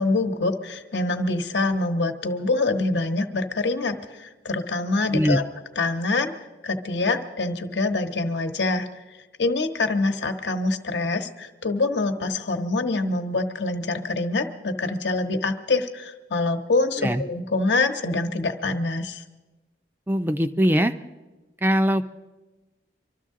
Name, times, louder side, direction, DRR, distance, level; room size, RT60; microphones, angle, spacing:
voice 1, 0.0-5.4 5.8-6.3 6.6-19.2, left 3 dB, 80° left, 6 dB, 1.1 m, -25 dB
voice 2, 20.1-20.9 21.6-22.0, equal, 10° right, 8 dB, 0.4 m, -21 dB
24.5 x 13.0 x 3.7 m, 1.2 s
head